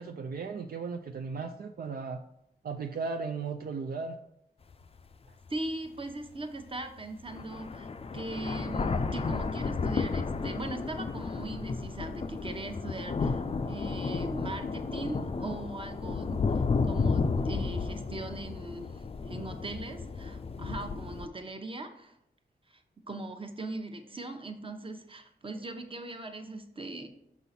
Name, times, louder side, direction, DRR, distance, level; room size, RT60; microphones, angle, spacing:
voice 1, 0.0-2.2 2.6-4.2 5.3-5.4, right 4 dB, 60° right, 4 dB, 0.5 m, -36 dB
sound 1, 4.7-4.8 5.5-5.6 6.8-6.9 7.3-21.3, left 4 dB, 35° left, 0.4 m, -32 dB
voice 2, 5.5-22.1 22.7-22.8 23.1-27.1, right 2 dB, 30° right, 5 dB, 0.9 m, -40 dB
6.0 x 5.5 x 4.2 m, 0.79 s
cardioid pair, 70°, 18 cm